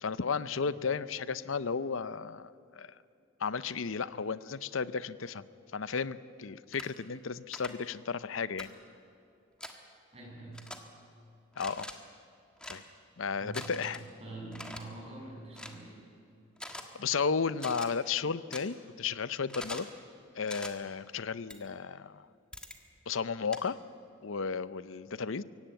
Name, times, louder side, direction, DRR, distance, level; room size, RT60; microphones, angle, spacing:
voice 1, 0.0-2.9 3.4-5.4 5.7-8.7 11.6-11.9 12.7-12.8 13.2-14.0 17.0-19.9 20.4-22.3 23.1-23.8 24.2-25.4, left 5 dB, 75° left, 16 dB, 0.7 m, -34 dB
sound 1, 6.7-6.9 7.5-7.7 8.6-8.7 9.6-9.7 10.5-10.8 11.5-11.9 12.6-12.8 13.5-14.0 14.5-14.8 15.5-15.8 16.6-16.8 17.6-17.9 18.5-18.6 19.5-19.9 20.5-20.7 21.5-21.6 22.5-22.8 23.5-23.6, left 1 dB, 5° left, 1.5 m, -43 dB
voice 2, 10.1-10.8 13.4-16.0, right 2 dB, 30° right, -3 dB, 7.7 m, -46 dB
23.5 x 17.0 x 9.1 m, 2.6 s
head